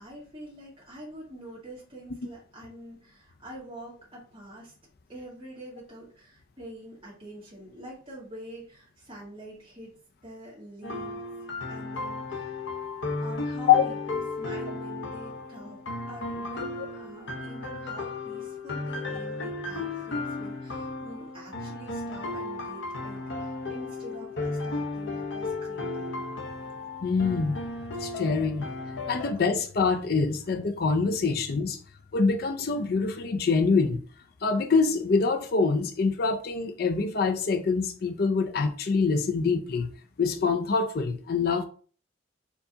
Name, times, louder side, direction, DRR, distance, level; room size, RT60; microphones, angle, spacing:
voice 1, 0.0-4.7 5.1-9.9 10.2-11.3 11.7-12.5 13.2-26.3, right 1 dB, 25° right, 2.2 m, -45 dB
sound 1, 10.8-29.3, left 3 dB, 75° left, 0.8 m, -35 dB
voice 2, 27.0-27.6 28.0-28.7 29.1-31.8 32.1-34.0 34.4-39.9 40.2-41.6, left 4 dB, 50° left, 0.4 m, -25 dB
4.5 x 3.9 x 2.7 m
head